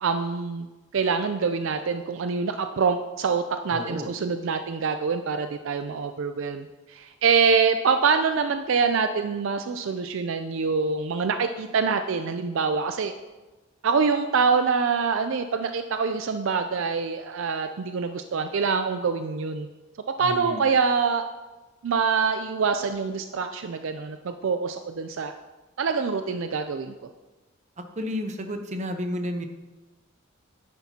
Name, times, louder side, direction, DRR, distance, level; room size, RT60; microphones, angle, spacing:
voice 1, 0.0-0.7 0.9-13.1 13.8-19.7 20.2-21.2 21.8-25.3 25.8-26.9, right 5 dB, 65° right, 8 dB, 0.4 m, -25 dB
voice 2, 3.7-4.1 20.2-20.6 27.8-29.5, left 1 dB, 35° right, 6 dB, 0.8 m, -31 dB
10.5 x 9.6 x 2.8 m, 1.2 s
head